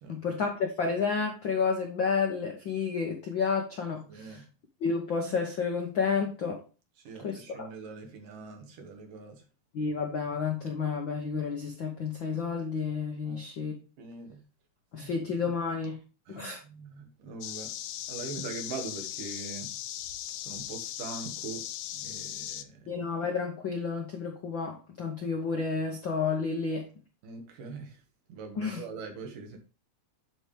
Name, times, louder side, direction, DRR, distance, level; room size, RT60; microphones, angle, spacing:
voice 1, 0.1-4.1 4.8-6.6 7.2-7.7 9.7-13.7 14.9-16.0 16.3-16.6 22.9-26.8 28.6-28.8, left 5 dB, 70° left, 1.1 m, -30 dB
voice 2, 4.1-4.5 7.0-9.5 13.2-13.5 14.0-14.5 15.0-15.5 16.3-17.7 18.1-19.8 20.4-23.0 27.2-28.0 28.3-29.6, right 4 dB, 80° right, 3.2 m, -42 dB
sound 1, 17.4-22.6, left 12 dB, 90° left, 2.2 m, -38 dB
11.0 x 4.4 x 3.4 m
omnidirectional pair, 3.7 m